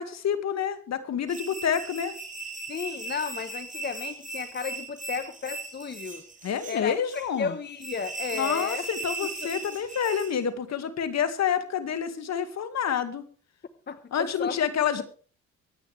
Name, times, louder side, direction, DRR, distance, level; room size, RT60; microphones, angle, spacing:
voice 1, 0.0-2.1 6.4-7.5 8.3-13.2 14.1-15.0, left 8 dB, 60° left, 10 dB, 2.1 m, -28 dB
sound 1, 1.3-10.4, right 3 dB, 25° right, 4.6 m, -38 dB
voice 2, 2.7-6.2 6.7-6.9 7.4-8.9 9.4-9.5 13.9-14.6 15.0-15.1, left 5 dB, 35° left, 11 dB, 1.1 m, -33 dB
24.0 x 9.3 x 3.4 m, 0.41 s
cardioid pair, 90°, 30 cm